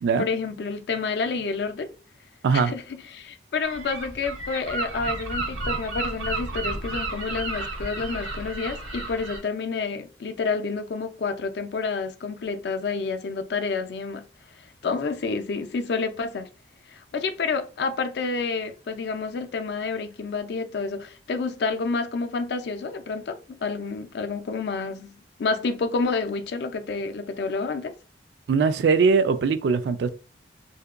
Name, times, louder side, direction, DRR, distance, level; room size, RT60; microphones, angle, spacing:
voice 1, 0.2-1.9 2.5-14.2 14.6-16.5 16.9-27.9, left 4 dB, 65° left, 0.4 m, -29 dB
Gull seagull, 3.6-9.4, right 2 dB, 90° right, 0.7 m, -32 dB
voice 2, 28.5-30.1, right 5 dB, 70° right, 0.3 m, -21 dB
2.7 x 2.2 x 2.3 m
head